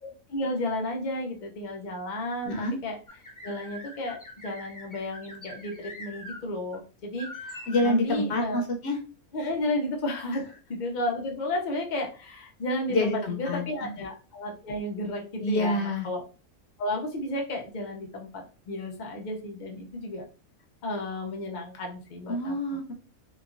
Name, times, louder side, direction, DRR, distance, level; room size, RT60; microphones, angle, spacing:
voice 1, 0.0-3.0 3.4-8.6 9.3-10.4 10.7-16.2 16.8-20.2 20.8-22.6, left 1 dB, 85° left, 1 dB, 0.4 m, -33 dB
voice 2, 2.4-2.8 7.7-9.0 12.9-13.6 15.4-16.1 22.3-22.9, left 1 dB, 65° left, 2 dB, 0.7 m, -27 dB
sound 1, 3.1-6.4 6.7-6.8 7.2-8.0, left 1 dB, 25° left, 0.4 m, -43 dB
2.9 x 2.3 x 2.4 m, 0.36 s
omnidirectional pair, 1.4 m